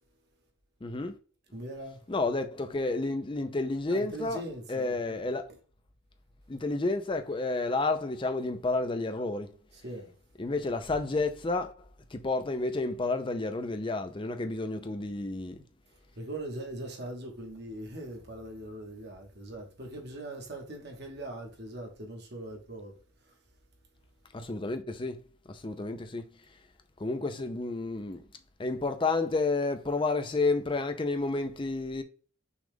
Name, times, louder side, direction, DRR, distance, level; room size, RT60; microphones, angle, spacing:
voice 1, 0.8-1.2 2.1-4.4 4.7-5.5 6.5-9.5 10.4-11.7 12.1-15.6 24.3-25.2 25.5-26.3 27.0-28.2 28.6-32.0, left 3 dB, 25° left, 0.5 m, -30 dB
voice 2, 1.5-2.0 3.9-5.2 9.7-10.1 16.2-23.0 23.2-23.3, right 1 dB, 55° right, 1.2 m, -41 dB
6.1 x 2.4 x 3.6 m
head